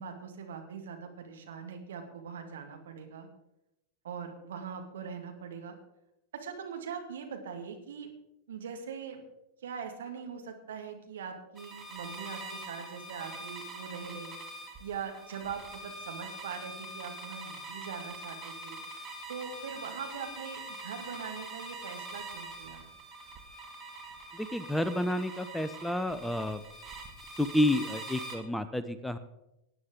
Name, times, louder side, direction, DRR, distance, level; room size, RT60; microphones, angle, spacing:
voice 1, 0.0-3.3 4.0-5.8 6.3-8.1 8.5-9.2 9.6-14.3 14.8-18.8 19.3-22.9, right 6 dB, 60° right, 4 dB, 2.0 m, -42 dB
sound 1, 11.6-28.4, right 1 dB, 15° right, 2.1 m, -44 dB
voice 2, 24.3-26.6 27.4-29.2, left 1 dB, 5° left, 12 dB, 0.6 m, -30 dB
18.5 x 9.6 x 3.7 m, 0.86 s
figure-of-eight pair, 90°, 0 cm